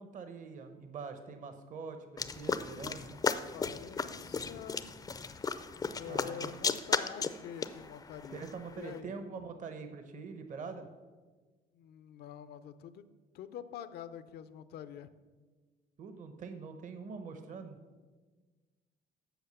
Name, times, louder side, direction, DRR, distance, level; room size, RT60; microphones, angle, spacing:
voice 1, 0.0-3.2 6.1-6.8 8.3-10.9 16.0-17.8, right 5 dB, 50° right, 8 dB, 0.9 m, -44 dB
sound 1, 2.2-9.0, left 5 dB, 20° left, 0.5 m, -35 dB
voice 2, 3.2-4.9 5.9-8.5 8.7-9.1 11.7-15.1, left 9 dB, 70° left, 13 dB, 0.6 m, -46 dB
8.1 x 6.3 x 6.7 m, 1.4 s
cardioid pair, 110°, 17 cm